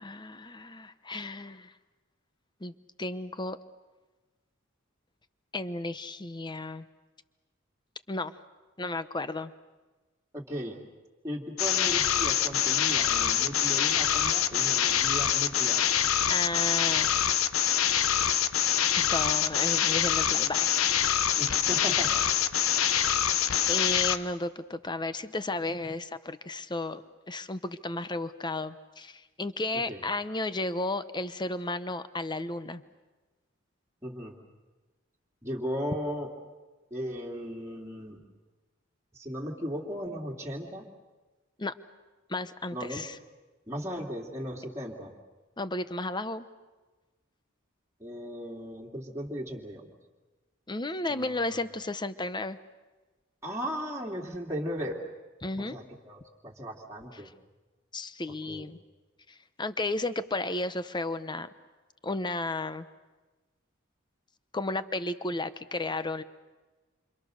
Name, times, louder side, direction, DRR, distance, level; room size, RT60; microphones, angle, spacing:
voice 1, 0.0-1.7 2.6-2.7 3.0-3.6 5.5-6.9 8.1-8.3 8.8-9.5 16.3-17.2 18.9-20.7 21.0-21.3 23.7-32.8 41.6-41.7 42.3-43.2 45.6-46.5 50.7-52.6 55.4-55.8 57.1-57.3 57.9-58.8 59.3-61.5 62.0-62.9 64.5-66.2, left 2 dB, 20° left, 12 dB, 0.9 m, -33 dB
voice 2, 10.3-10.8 11.2-15.9 21.4-22.1 29.9-30.0 34.0-34.4 35.4-36.3 36.9-38.2 39.1-40.8 42.7-43.0 43.7-45.1 48.0-49.9 51.1-51.6 53.4-55.0 55.6-57.3 58.5-58.7, equal, 15° right, -3 dB, 2.9 m, -36 dB
sound 1, 11.6-24.2, left 9 dB, 85° left, 1.0 m, -25 dB
28.0 x 27.5 x 6.6 m, 1.2 s
head